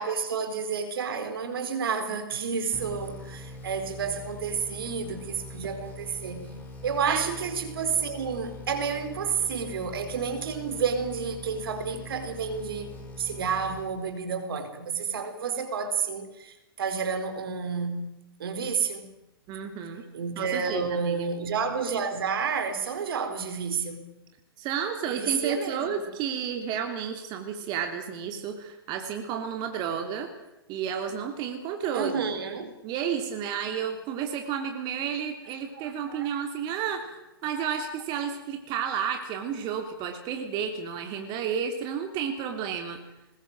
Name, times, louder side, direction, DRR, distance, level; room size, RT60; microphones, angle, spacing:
voice 1, 0.0-6.5 6.8-12.9 13.2-18.0 18.4-19.1 20.1-24.1 25.1-25.9 31.9-32.7 35.8-36.3, right 6 dB, 70° right, 4.2 m, -30 dB
sound 1, 2.7-14.4, left 1 dB, 15° left, 5.6 m, -43 dB
voice 2, 19.5-20.0 20.4-21.2 24.6-30.3 30.7-32.2 32.8-43.0, right 7 dB, 35° right, 3.1 m, -31 dB
22.5 x 20.5 x 7.7 m
hypercardioid pair, 125°, 13 cm